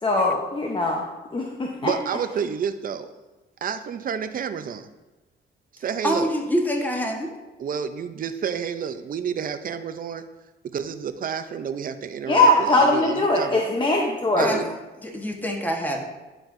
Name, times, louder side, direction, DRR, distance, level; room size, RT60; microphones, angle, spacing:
voice 1, 0.0-1.0 1.3-1.9 12.3-14.6, left 2 dB, 25° left, 0 dB, 0.8 m, -21 dB
voice 2, 1.8-3.1 3.6-4.9 5.7-6.3 7.6-10.3 10.7-13.6 14.4-14.7, right 7 dB, 45° right, 10 dB, 0.5 m, -30 dB
voice 3, 6.0-7.3 14.4-14.6 15.0-16.0, equal, 10° left, 1 dB, 1.3 m, -26 dB
10.5 x 4.4 x 2.6 m, 1.1 s
cardioid pair, 90°, 20 cm